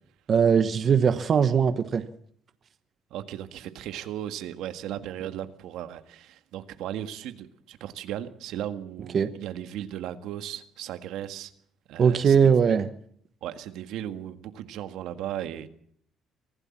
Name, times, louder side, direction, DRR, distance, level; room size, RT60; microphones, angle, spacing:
voice 1, 0.3-2.0 9.1-9.3 12.0-12.9, right 7 dB, 40° right, 10 dB, 1.0 m, -20 dB
voice 2, 3.1-11.5 11.9-12.8 13.4-15.8, right 11 dB, 75° right, 9 dB, 1.8 m, -36 dB
24.5 x 16.5 x 7.4 m, 0.64 s
cardioid pair, 140°, 0 cm